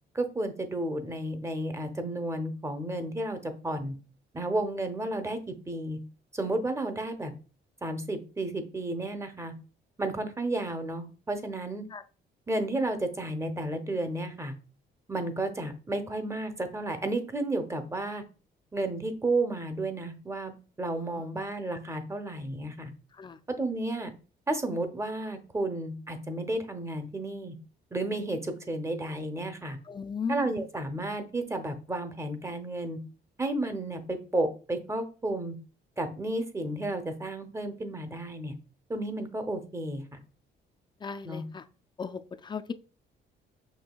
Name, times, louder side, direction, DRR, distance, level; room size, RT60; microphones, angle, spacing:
voice 1, 0.1-3.9 4.3-6.0 6.3-7.3 7.8-9.5 10.0-11.8 12.5-14.5 15.1-18.2 18.7-22.9 23.6-24.1 24.5-27.6 27.9-29.8 30.3-33.0 33.4-35.5 36.0-38.6 38.9-40.2 41.2-41.4, right 2 dB, 15° right, 8 dB, 0.7 m, -32 dB
voice 2, 20.9-21.4 23.1-23.4 29.8-30.5 41.0-41.7 42.0-42.7, left 5 dB, 25° left, 9 dB, 0.4 m, -37 dB
6.2 x 2.7 x 2.3 m, 0.35 s
cardioid pair, 90°, 20 cm